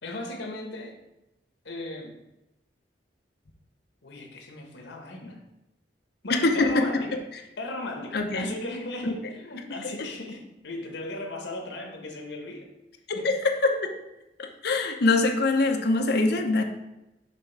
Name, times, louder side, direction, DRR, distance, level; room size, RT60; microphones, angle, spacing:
voice 1, 0.0-1.0 1.6-2.2 4.0-5.5 6.2-7.2 7.6-12.7 13.1-13.3, left 2 dB, 90° left, 3 dB, 1.1 m, -37 dB
voice 2, 6.4-6.9 8.1-8.5 9.0-9.1 10.0-10.1 13.1-13.9 14.4-16.6, left 3 dB, 65° left, 4 dB, 0.7 m, -24 dB
6.1 x 3.5 x 4.5 m, 0.92 s
head